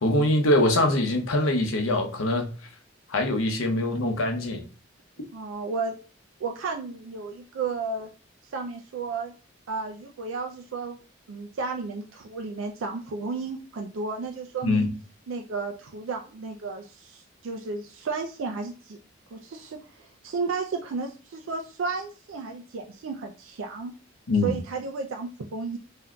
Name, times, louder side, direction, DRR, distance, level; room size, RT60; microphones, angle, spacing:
voice 1, 0.0-2.5 3.1-4.6 14.6-14.9 24.3-24.5, left 1 dB, 90° left, 4 dB, 0.7 m, -23 dB
voice 2, 5.3-5.9 6.4-8.1 8.5-9.3 9.7-11.0 11.3-14.9 15.3-19.0 19.3-23.9 24.4-25.8, right 4 dB, 80° right, 3 dB, 0.4 m, -33 dB
3.6 x 2.6 x 2.2 m, 0.38 s
head